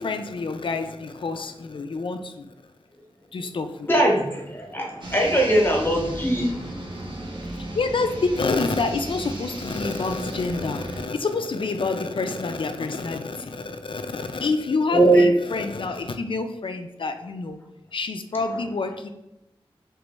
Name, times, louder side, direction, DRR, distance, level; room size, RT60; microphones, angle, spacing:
voice 1, 0.0-2.5 3.3-4.1 7.5-17.6 17.9-19.1, left 3 dB, 60° left, 7 dB, 0.4 m, -28 dB
voice 2, 3.9-6.6 14.9-15.3, right 1 dB, 20° left, -1 dB, 1.0 m, -20 dB
sound 1, 5.0-11.1, right 1 dB, 55° right, 0.7 m, -35 dB
3.0 x 3.0 x 3.3 m, 0.93 s
wide cardioid pair, 85°, 10 cm